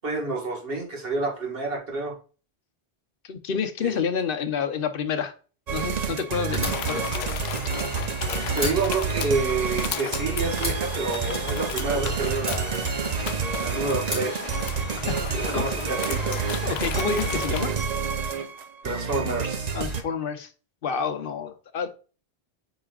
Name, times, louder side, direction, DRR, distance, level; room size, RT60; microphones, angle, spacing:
voice 1, 0.0-2.2 3.8-4.0 8.5-12.8 13.6-14.5 15.3-16.4 17.0-17.1 18.8-19.8, right 3 dB, 65° right, 2.1 m, -29 dB
voice 2, 3.3-5.3 5.7-7.0 14.9-15.7 16.6-17.7 19.7-20.5 20.8-21.9, left 6 dB, 60° left, 1.0 m, -29 dB
sound 1, 5.7-20.0, right 5 dB, 45° right, 0.7 m, -29 dB
Fire, 6.5-8.2 8.5-10.2 10.6-11.9 12.4-13.5 14.0-15.2, equal, 10° right, 3.1 m, -34 dB
sound 2, 6.6-17.7, left 10 dB, 85° left, 0.8 m, -35 dB
8.2 x 4.9 x 2.4 m
omnidirectional pair, 1.1 m